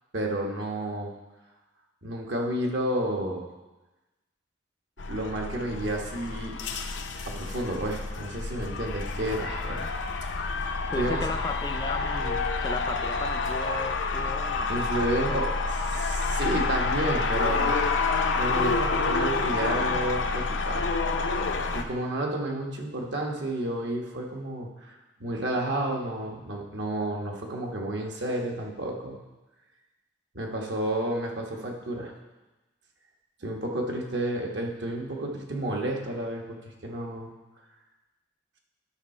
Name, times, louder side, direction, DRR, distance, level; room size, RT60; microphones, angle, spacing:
voice 1, 0.1-1.1 2.0-3.5 5.1-6.6 7.2-9.9 11.0-11.2 14.7-15.5 16.0-17.9 18.3-20.9 21.7-29.2 30.3-32.1 33.4-37.3, right 1 dB, 70° right, 0 dB, 1.3 m, -31 dB
sound 1, 5.0-21.8, left 4 dB, 80° left, 0.6 m, -28 dB
voice 2, 10.9-14.7 15.0-15.4, left 2 dB, 20° left, 7 dB, 0.4 m, -35 dB
10.5 x 5.6 x 4.3 m, 1.1 s
head